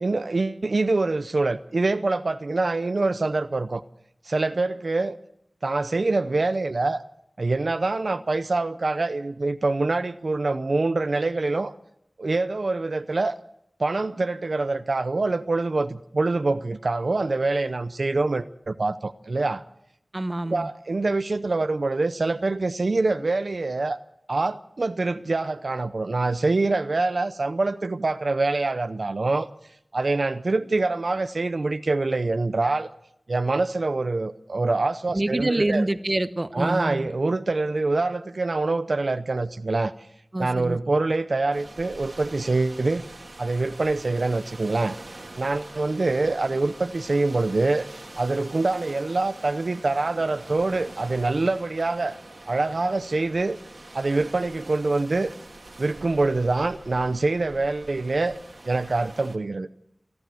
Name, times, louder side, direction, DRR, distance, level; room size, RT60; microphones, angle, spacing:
voice 1, 0.0-3.8 4.2-5.2 5.6-7.0 7.4-11.7 12.2-13.4 13.8-19.6 20.5-24.0 24.3-29.5 29.9-32.9 33.3-35.9 36.5-39.9 40.4-43.0 43.4-47.9 48.2-52.2 52.5-53.6 53.9-55.3 55.8-58.4 58.6-59.7, right 3 dB, 80° right, 0.7 m, -25 dB
voice 2, 20.1-20.7 35.1-37.1 40.3-40.8, right 1 dB, 40° right, 0.9 m, -26 dB
sound 1, 41.5-59.4, right 2 dB, 60° right, 2.1 m, -44 dB
28.5 x 12.0 x 7.7 m
wide cardioid pair, 60°, 0 cm